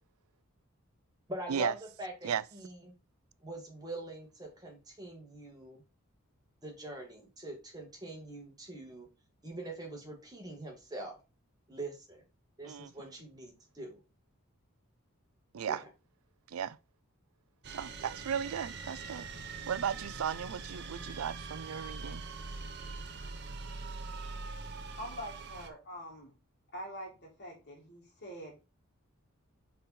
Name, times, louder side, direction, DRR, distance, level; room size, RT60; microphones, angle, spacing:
voice 1, 1.3-1.7 2.0-2.9 3.4-5.8 6.6-9.1 9.4-11.2 11.7-12.2 12.6-14.0 15.7-15.9, right 1 dB, 20° right, 1.9 m, -43 dB
voice 2, 12.6-13.1 15.5-15.8 16.5-16.8 17.7-22.2, right 8 dB, 80° right, 0.4 m, -36 dB
sound 1, 17.6-25.7, right 4 dB, 50° right, 0.9 m, -43 dB
voice 3, 25.0-26.3 26.7-28.5, equal, 50° left, 2.3 m, -44 dB
5.5 x 4.2 x 4.1 m
head